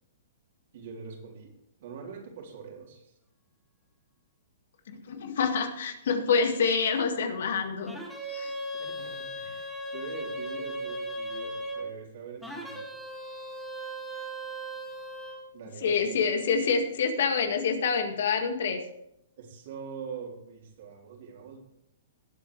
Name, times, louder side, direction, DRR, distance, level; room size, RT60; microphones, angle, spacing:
voice 1, 0.7-1.5 1.8-3.1 8.8-12.9 15.5-16.2 16.5-16.6 19.4-21.6, right 6 dB, 60° right, 0 dB, 3.6 m, -43 dB
voice 2, 4.9-8.0 8.3-8.5 15.8-18.8, left 5 dB, 70° left, 6 dB, 1.9 m, -27 dB
sound 1, 7.9-11.9 12.4-15.5, equal, ahead, 2.0 m, -37 dB
18.5 x 8.2 x 3.2 m, 0.78 s
hypercardioid pair, 140°, 0 cm